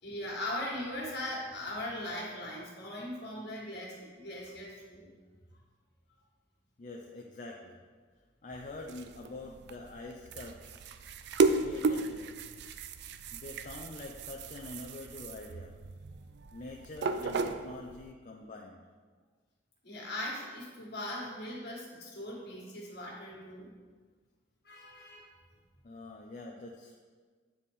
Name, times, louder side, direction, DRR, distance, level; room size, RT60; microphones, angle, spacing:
voice 1, 0.0-5.1 19.8-23.7 24.6-25.4, left 1 dB, 60° left, -3 dB, 1.8 m, -39 dB
voice 2, 6.8-7.8 8.4-10.8 11.6-12.3 13.3-15.7 16.5-18.8 25.8-27.0, left 2 dB, 40° left, 0 dB, 0.5 m, -45 dB
sound 1, 8.5-18.1, right 3 dB, 65° right, 0.4 m, -34 dB
9.2 x 4.1 x 3.6 m, 1.5 s
head